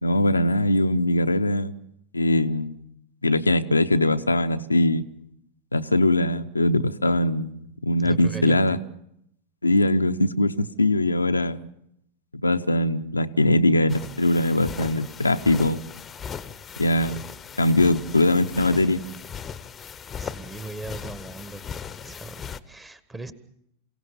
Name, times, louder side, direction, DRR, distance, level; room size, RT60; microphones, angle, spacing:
voice 1, 0.0-1.7 2.1-2.7 3.2-5.1 5.7-8.8 9.6-11.6 12.4-15.8 16.8-17.2 17.6-19.0, left 1 dB, 80° left, 8 dB, 0.8 m, -21 dB
voice 2, 8.0-8.8 20.2-21.6 22.0-23.3, right 3 dB, 10° right, 13 dB, 1.5 m, -38 dB
sound 1, 13.9-22.6, left 7 dB, 20° left, 0.9 m, -38 dB
28.0 x 17.0 x 7.0 m, 0.77 s
figure-of-eight pair, 90°, 0 cm